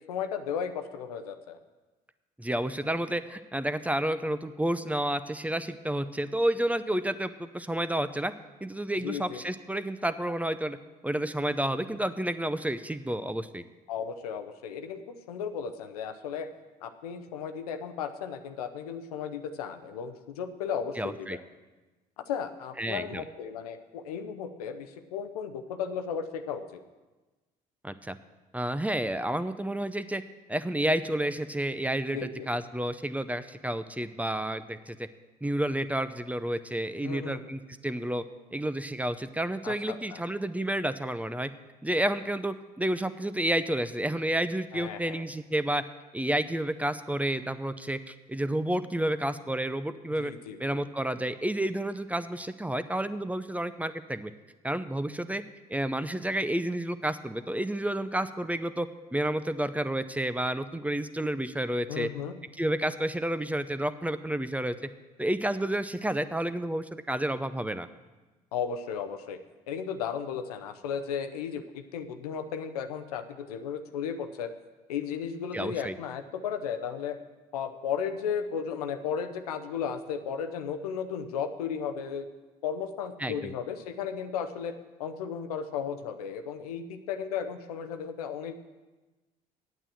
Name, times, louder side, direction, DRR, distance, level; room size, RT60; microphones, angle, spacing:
voice 1, 0.1-1.6 9.0-9.4 13.9-16.5 16.8-21.4 22.2-26.8 32.1-32.5 37.0-37.4 39.6-40.2 44.7-45.2 50.2-50.8 61.9-62.3 68.5-69.4 69.7-74.5 74.9-77.2 77.5-82.3 82.6-88.6, left 7 dB, 90° left, 8 dB, 0.7 m, -35 dB
voice 2, 2.4-8.3 8.6-10.8 11.0-13.6 21.0-21.4 22.8-23.2 27.8-28.2 28.5-30.2 30.5-35.1 35.4-38.2 38.5-41.5 41.8-45.8 46.1-50.3 50.6-54.3 54.6-55.4 55.7-62.1 62.6-64.7 65.2-67.9 75.5-75.9 83.2-83.5, right 1 dB, 10° right, 12 dB, 0.6 m, -30 dB
9.0 x 8.5 x 7.5 m, 1.2 s
hypercardioid pair, 60°, 19 cm